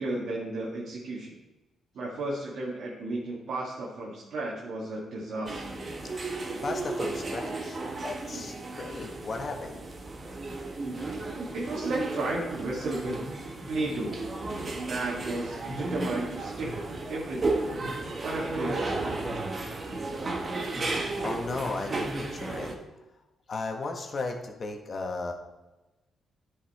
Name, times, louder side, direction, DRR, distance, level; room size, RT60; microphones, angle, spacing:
voice 1, 0.0-1.3 2.0-5.8 11.5-13.2 13.7-14.2 14.9-17.6 18.2-19.5, right 2 dB, 75° right, -4 dB, 1.9 m, -33 dB
sound 1, 5.5-22.7, right 2 dB, 45° right, 1.4 m, -34 dB
voice 2, 6.0-6.4 6.6-9.8 20.8-22.7 23.5-25.3, left 3 dB, 50° left, 3 dB, 1.6 m, -36 dB
10.0 x 5.6 x 4.3 m, 1.1 s
cardioid pair, 65°, 0 cm